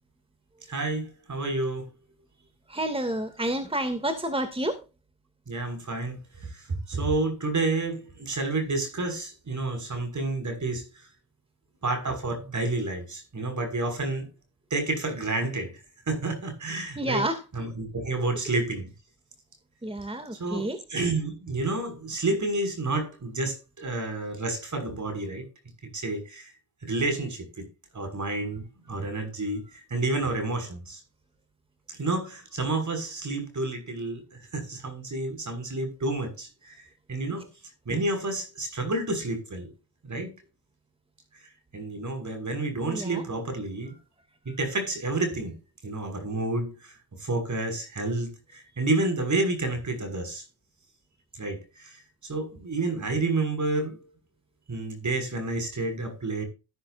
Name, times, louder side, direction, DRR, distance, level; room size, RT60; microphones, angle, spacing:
voice 1, 0.7-1.9 5.5-11.1 11.8-14.3 14.7-15.7 16.1-17.2 17.5-18.9 20.3-25.5 25.9-26.5 26.8-27.7 27.9-29.6 29.9-31.0 31.9-37.5 37.9-39.7 40.0-40.3 41.7-43.9 44.5-45.5 45.8-46.9 47.2-50.4 51.3-54.0 54.7-56.5, right 2 dB, 50° right, 5.9 m, -30 dB
voice 2, 2.7-4.8 17.0-17.4 19.8-20.8 42.9-43.2, right 1 dB, 15° right, 2.5 m, -29 dB
13.0 x 12.5 x 2.6 m
cardioid pair, 60°, 39 cm